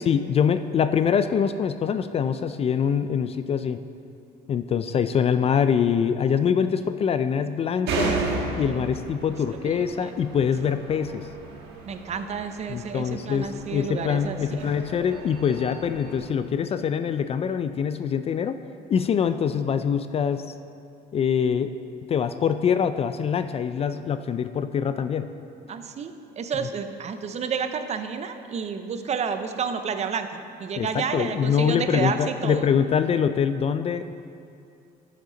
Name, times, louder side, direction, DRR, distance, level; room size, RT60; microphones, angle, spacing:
voice 1, 0.0-3.8 4.5-8.2 8.6-11.3 12.7-18.6 18.9-20.4 21.1-21.7 22.1-25.3 30.8-34.1, left 7 dB, 35° left, 11 dB, 0.3 m, -24 dB
sound 1, 7.9-16.3, right 3 dB, 80° right, 1.3 m, -34 dB
voice 2, 9.6-10.1 11.9-14.7 25.7-32.7, right 6 dB, 40° right, 9 dB, 0.6 m, -30 dB
12.0 x 6.6 x 3.9 m, 2.5 s
cardioid pair, 110°, 17 cm